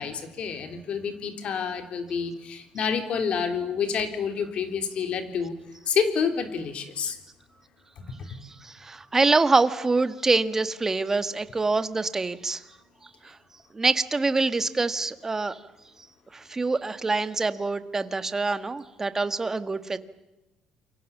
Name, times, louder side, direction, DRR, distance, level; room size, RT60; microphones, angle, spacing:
voice 1, 0.0-5.6 5.9-7.2 8.0-8.2, left 6 dB, 50° left, 7 dB, 3.7 m, -28 dB
voice 2, 8.6-12.6 13.2-13.3 13.7-15.6 16.3-20.0, right 3 dB, 15° right, 12 dB, 1.4 m, -25 dB
29.0 x 23.5 x 7.3 m, 1.0 s
cardioid pair, 130°, 2 cm